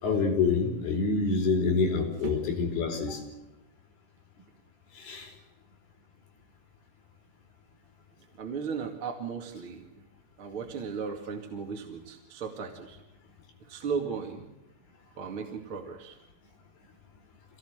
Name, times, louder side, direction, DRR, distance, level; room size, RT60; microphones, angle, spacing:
voice 1, 0.0-3.2 4.9-5.3, left 4 dB, 60° left, 3 dB, 6.2 m, -27 dB
voice 2, 2.2-2.7 8.4-10.0 10.4-13.0 13.6-14.5 15.1-16.2, right 5 dB, 40° right, 3 dB, 2.2 m, -36 dB
26.5 x 18.5 x 8.1 m, 0.93 s
omnidirectional pair, 5.2 m